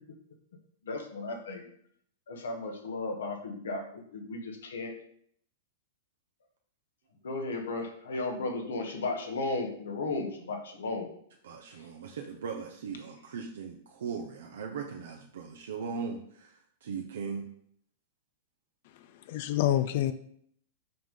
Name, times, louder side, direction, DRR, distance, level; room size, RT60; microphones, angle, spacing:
voice 1, 0.8-1.7 2.3-4.9 7.2-11.1 11.7-11.9, left 3 dB, 80° left, 4 dB, 1.3 m, -35 dB
voice 2, 11.5-16.2 16.8-17.4, right 5 dB, 75° right, 2 dB, 0.6 m, -38 dB
voice 3, 18.9-20.1, left 12 dB, 60° left, 11 dB, 0.3 m, -28 dB
5.8 x 3.7 x 5.2 m, 0.65 s
hypercardioid pair, 115°, 0 cm